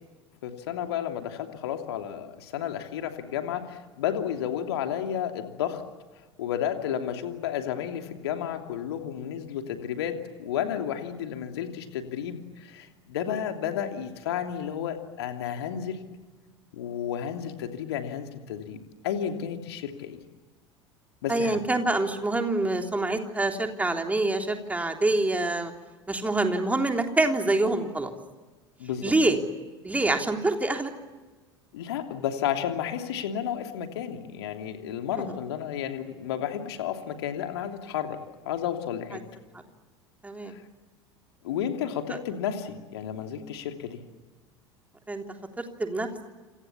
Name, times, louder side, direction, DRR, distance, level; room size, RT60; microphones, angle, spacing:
voice 1, 0.4-5.8 6.4-16.0 16.7-20.2 21.2-21.6 28.8-29.1 31.7-38.2 38.4-39.2 40.5-40.6 41.4-44.0, left 9 dB, 60° left, 5 dB, 3.0 m, -32 dB
voice 2, 21.3-25.7 26.1-28.1 29.0-29.4 29.8-30.9 35.2-35.3 40.2-40.5 45.1-45.2 45.6-46.2, right 2 dB, 10° right, 4 dB, 3.4 m, -26 dB
28.0 x 27.5 x 7.2 m, 1.3 s
figure-of-eight pair, 75°, 15 cm